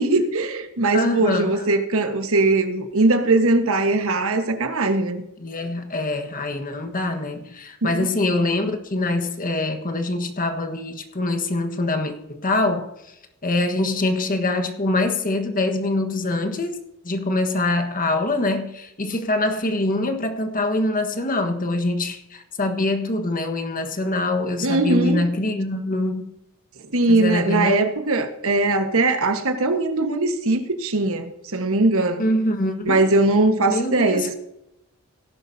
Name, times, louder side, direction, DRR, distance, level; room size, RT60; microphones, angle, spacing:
voice 1, 0.0-5.2 7.8-8.1 24.6-25.3 26.9-32.2 32.8-34.3, right 2 dB, 65° right, 1.4 m, -20 dB
voice 2, 0.9-1.6 5.4-13.1 13.4-26.3 27.1-27.8 32.2-33.1 33.7-34.3, left 2 dB, 40° left, 1.4 m, -24 dB
17.5 x 11.0 x 2.7 m
head